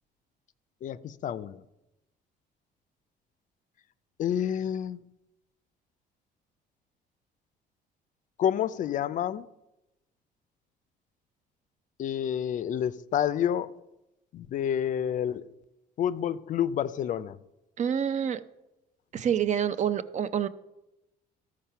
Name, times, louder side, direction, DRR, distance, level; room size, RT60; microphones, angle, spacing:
voice 1, 0.8-1.6 4.2-5.0 8.4-9.5 12.0-13.8 14.3-15.5 16.0-17.4, left 9 dB, 50° left, 0.4 m, -29 dB
voice 2, 17.8-18.4 19.1-20.5, right 8 dB, 45° right, 0.5 m, -27 dB
13.5 x 4.9 x 5.7 m
cardioid pair, 110°, 17 cm